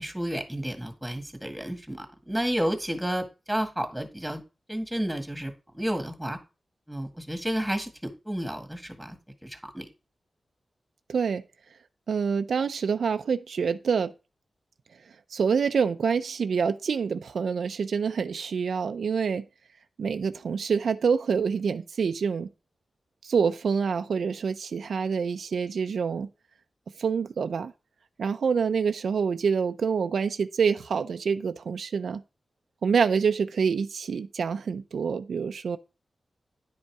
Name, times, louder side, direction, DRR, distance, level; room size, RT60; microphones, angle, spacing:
voice 1, 0.0-4.4 4.7-6.4 6.9-9.9, equal, 5° right, 1.9 m, -31 dB
voice 2, 11.1-11.4 12.1-14.1 15.3-19.4 20.0-22.5 23.2-26.3 27.0-27.7 28.2-32.2 32.8-35.8, right 6 dB, 85° right, 0.5 m, -26 dB
10.0 x 5.3 x 4.8 m
wide cardioid pair, 95°, 0 cm